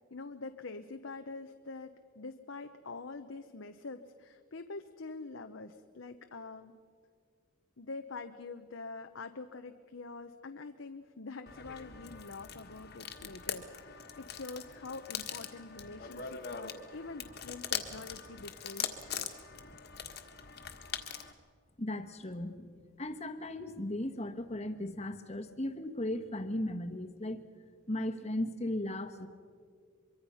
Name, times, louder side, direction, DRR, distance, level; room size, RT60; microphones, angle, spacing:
voice 1, 0.1-6.8 7.8-19.5, left 3 dB, 70° left, 7 dB, 0.9 m, -45 dB
sound 1, 11.5-21.3, left 8 dB, 50° left, 1.6 m, -42 dB
voice 2, 21.8-22.7 23.0-27.4 27.9-29.3, left 1 dB, 30° left, 7 dB, 1.3 m, -36 dB
24.0 x 24.0 x 5.7 m, 2.1 s
head